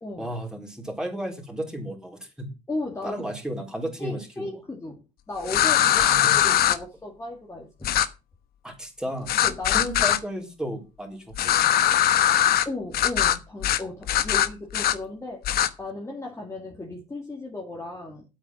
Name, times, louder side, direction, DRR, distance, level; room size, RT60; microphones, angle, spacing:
voice 1, 0.2-2.5 3.0-4.5 6.0-6.6 8.6-9.3 9.7-11.7, right 1 dB, 5° right, 4.1 m, -34 dB
voice 2, 2.7-3.3 4.0-5.0 5.3-7.9 9.4-10.0 12.6-15.4 15.8-18.2, left 2 dB, 15° left, 2.5 m, -35 dB
sound 1, 5.5-6.8 7.8-8.1 9.3-10.2 11.4-12.7 12.9-13.4 13.6-13.8 14.1-15.0 15.4-15.7, left 11 dB, 65° left, 1.1 m, -21 dB
9.1 x 8.4 x 6.3 m
cardioid pair, 110°, 17 cm